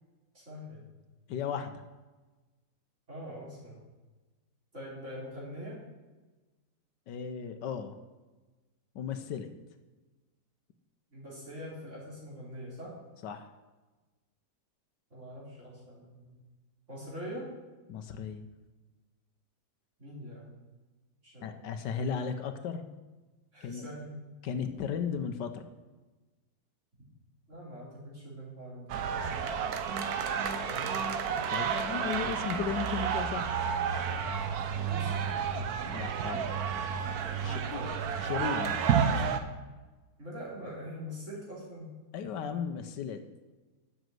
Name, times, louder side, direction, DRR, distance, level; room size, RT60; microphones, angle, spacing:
voice 1, 0.3-0.8 3.1-3.8 4.7-5.8 11.1-12.9 15.1-16.3 16.9-17.5 20.0-20.6 21.2-21.5 23.5-24.2 27.5-29.3 30.6-31.0 34.9-35.2 37.4-38.0 40.2-41.9, equal, 40° right, -6 dB, 4.1 m, -43 dB
voice 2, 1.3-1.7 7.1-8.0 8.9-9.5 13.2-13.5 17.9-18.4 21.4-22.8 23.6-23.9 24.4-25.6 31.5-33.5 35.9-36.5 37.4-37.6 38.2-38.8 42.1-43.2, left 7 dB, 75° left, 8 dB, 1.4 m, -35 dB
sound 1, 28.9-39.4, right 7 dB, 65° right, 1.2 m, -31 dB
7.7 x 6.5 x 7.7 m, 1.2 s
omnidirectional pair, 1.9 m